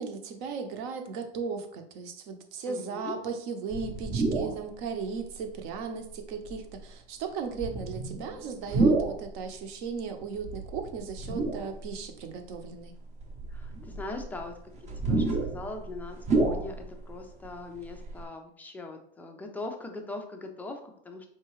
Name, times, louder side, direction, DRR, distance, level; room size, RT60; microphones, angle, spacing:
voice 1, 0.0-12.9, right 5 dB, 55° right, 6 dB, 0.8 m, -36 dB
voice 2, 2.7-3.2 13.5-14.6 15.0-21.3, left 2 dB, 5° left, 3 dB, 0.3 m, -41 dB
sound 1, 3.7-4.7 5.3-5.4 6.5-6.8 7.5-9.3 10.4-12.0 12.5-12.6 13.2-17.1 17.4-17.5 17.7-18.2, right 2 dB, 25° right, 0.7 m, -29 dB
4.6 x 2.8 x 3.1 m, 0.65 s
supercardioid pair, 130°, 30 cm